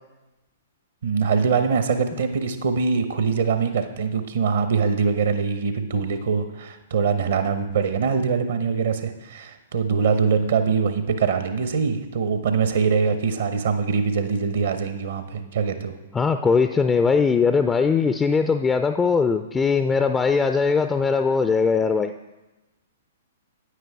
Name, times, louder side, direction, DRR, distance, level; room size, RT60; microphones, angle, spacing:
voice 1, 1.0-16.0, right 5 dB, 65° right, 9 dB, 0.8 m, -23 dB
voice 2, 16.1-22.1, left 5 dB, 15° left, 8 dB, 0.4 m, -20 dB
9.3 x 9.1 x 3.5 m, 1.1 s
figure-of-eight pair, 110°, 0 cm